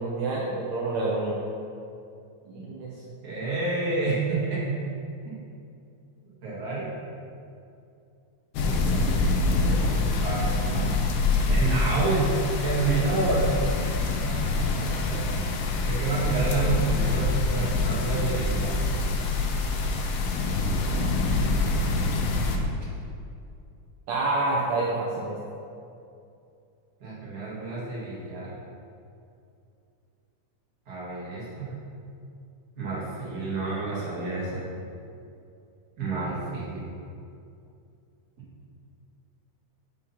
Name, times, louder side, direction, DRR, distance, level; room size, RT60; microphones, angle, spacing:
voice 1, 0.0-1.4 2.5-2.9 24.1-25.4, right 2 dB, 70° right, -5 dB, 1.9 m, -27 dB
voice 2, 3.2-4.7 5.2-5.4 6.4-6.9 9.4-12.3 12.6-13.6 14.2-15.4 15.8-18.8 27.0-28.5 30.9-31.8 32.8-34.6 36.0-36.9, right 3 dB, 40° right, -7 dB, 1.9 m, -29 dB
sound 1, 8.5-22.6, left 2 dB, 85° left, 1.3 m, -25 dB
5.6 x 4.9 x 5.6 m, 2.5 s
omnidirectional pair, 3.5 m